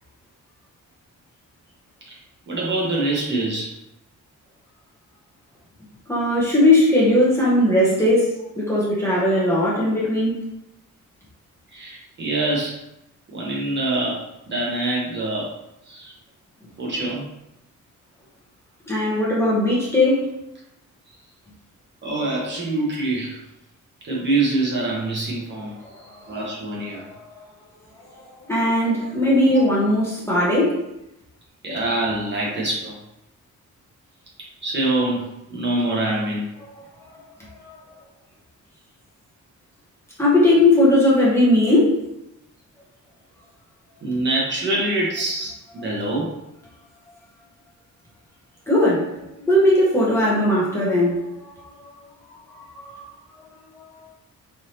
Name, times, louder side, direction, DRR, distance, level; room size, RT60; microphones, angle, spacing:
voice 1, 2.5-3.7 11.7-12.8 13.3-15.5 15.9-16.1 16.8-17.2 22.0-23.4 24.0-25.7 26.3-27.0 29.0-29.1 29.5-29.6 31.6-32.9 34.6-36.5 44.0-46.4, right 2 dB, 35° right, -4 dB, 1.0 m, -25 dB
voice 2, 6.1-10.3 18.9-20.3 25.8-26.2 26.9-27.4 28.1-30.8 36.7-37.7 40.2-42.0 48.7-49.1 49.4-51.5 51.8-51.9 52.5-53.0 53.7-54.1, left 1 dB, 10° left, -7 dB, 1.0 m, -19 dB
4.6 x 3.3 x 2.9 m, 0.88 s
wide cardioid pair, 180°, 31 cm